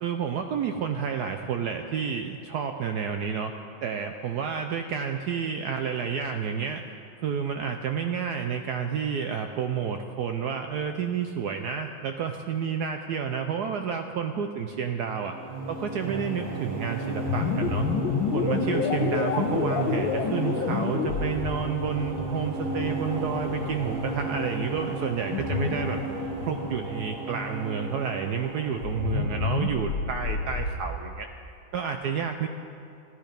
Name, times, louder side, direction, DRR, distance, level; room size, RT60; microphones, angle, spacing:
voice 1, 0.0-6.8 7.2-15.4 15.7-17.9 18.3-26.0 26.4-31.3 31.7-32.5, right 7 dB, 75° right, 6 dB, 0.9 m, -30 dB
sound 1, 15.1-30.4, right 1 dB, 45° right, 1.5 m, -34 dB
sound 2, 17.3-27.4 28.6-30.8, left 5 dB, 80° left, 1.6 m, -30 dB
13.0 x 11.5 x 5.1 m, 2.5 s
omnidirectional pair, 2.2 m